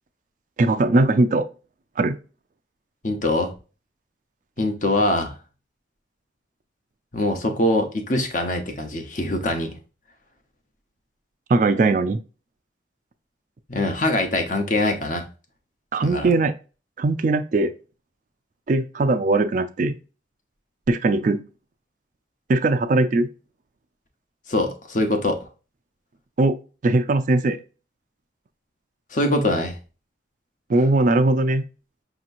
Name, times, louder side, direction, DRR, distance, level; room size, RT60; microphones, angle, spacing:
voice 1, 0.6-1.4 2.0-2.2 11.5-12.2 15.9-16.5 17.0-17.7 18.7-20.0 20.9-21.4 22.5-23.3 26.4-26.6 26.8-27.6 30.7-31.6, right 2 dB, 45° right, 0.3 m, -20 dB
voice 2, 3.0-3.5 4.6-5.4 7.1-9.7 13.7-15.3 16.0-16.3 24.5-25.4 29.1-29.8, left 1 dB, 40° left, 0.9 m, -23 dB
5.5 x 2.9 x 2.5 m
head